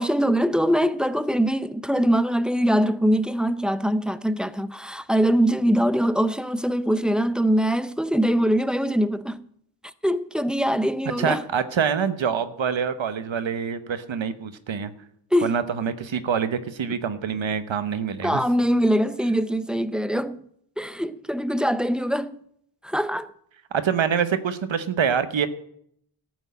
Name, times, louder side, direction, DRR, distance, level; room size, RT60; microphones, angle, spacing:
voice 1, 0.0-9.5 10.0-11.4 15.3-15.6 18.2-20.4 20.8-22.4 22.8-23.3, equal, ahead, 0.5 m, -23 dB
voice 2, 11.2-14.9 15.4-18.4 23.7-25.5, right 7 dB, 85° right, 1.0 m, -25 dB
14.0 x 6.2 x 9.4 m
wide cardioid pair, 110°, 45 cm